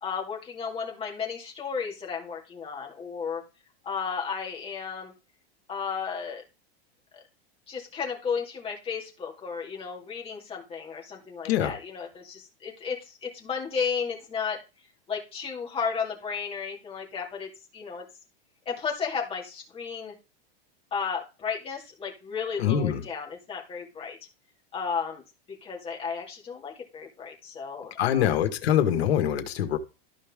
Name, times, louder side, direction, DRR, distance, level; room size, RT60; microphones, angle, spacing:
voice 1, 0.0-3.4 3.8-5.1 5.7-6.4 7.7-14.6 15.1-18.0 18.7-20.1 20.9-24.2 24.7-25.2 25.6-28.3, left 6 dB, 20° left, 2.4 m, -33 dB
voice 2, 22.6-23.0 28.0-29.8, left 10 dB, 80° left, 1.7 m, -24 dB
13.0 x 5.3 x 3.6 m
supercardioid pair, 160°, 31 cm